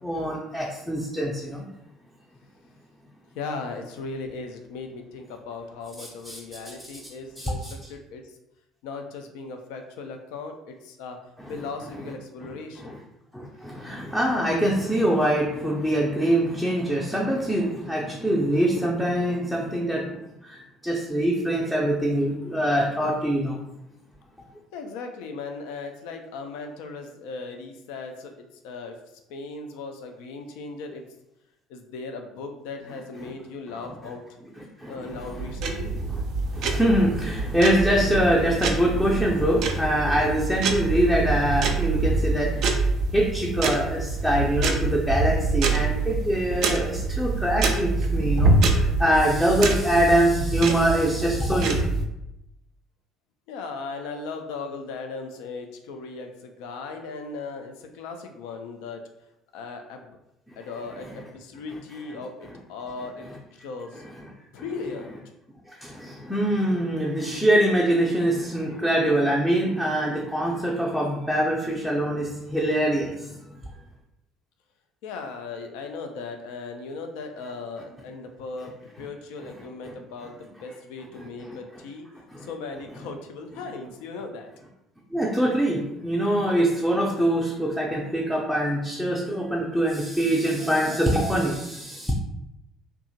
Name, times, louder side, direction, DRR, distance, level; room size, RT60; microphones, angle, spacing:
voice 1, 0.0-1.7 6.0-6.4 6.6-6.7 7.4-7.7 11.4-11.5 12.8-13.0 13.3-20.2 20.4-23.6 34.8-35.5 36.1-36.2 36.5-42.6 43.1-51.8 60.5-60.6 64.2-64.3 65.7-73.5 79.8-79.9 81.2-81.6 82.3-82.5 85.1-92.1, right 1 dB, 5° left, -3 dB, 0.5 m, -24 dB
voice 2, 3.3-8.3 8.8-11.2 11.5-13.0 24.7-29.0 29.3-31.0 31.7-34.2 34.9-35.9 53.5-59.0 59.5-60.2 60.6-64.0 64.5-65.1 75.0-82.1 82.4-84.5, left 4 dB, 65° left, 5 dB, 0.4 m, -37 dB
sound 1, 35.1-52.1, right 3 dB, 55° right, 0.4 m, -25 dB
2.7 x 2.3 x 2.6 m, 0.87 s
figure-of-eight pair, 55°, 0 cm